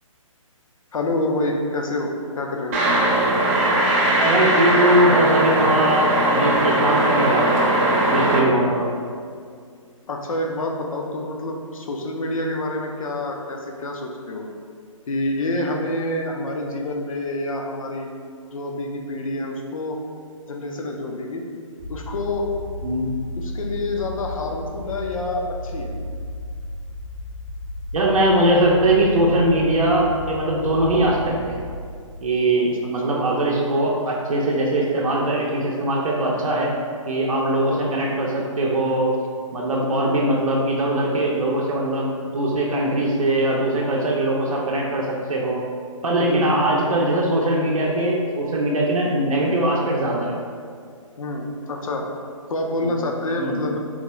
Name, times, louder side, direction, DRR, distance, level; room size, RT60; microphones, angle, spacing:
voice 1, 0.9-2.1 2.4-2.8 10.1-14.5 15.1-18.1 18.5-20.0 20.5-21.4 21.9-22.5 23.4-25.9 37.7-37.9 39.9-40.1 46.1-47.1 51.2-52.1 52.5-53.8, left 1 dB, 80° left, 1 dB, 0.6 m, -27 dB
sound 1, 2.7-8.4, right 1 dB, 25° right, 0.5 m, -19 dB
voice 2, 4.2-7.7 8.0-8.9 22.8-23.1 27.9-31.6 32.2-36.7 37.1-39.1 39.5-45.6 46.0-50.4 52.8-52.9 53.4-53.6, right 1 dB, 80° right, -3 dB, 0.5 m, -21 dB
sound 2, 21.8-32.0, left 1 dB, 20° left, 0.6 m, -33 dB
3.7 x 2.2 x 2.9 m, 2.2 s
hypercardioid pair, 150°, 17 cm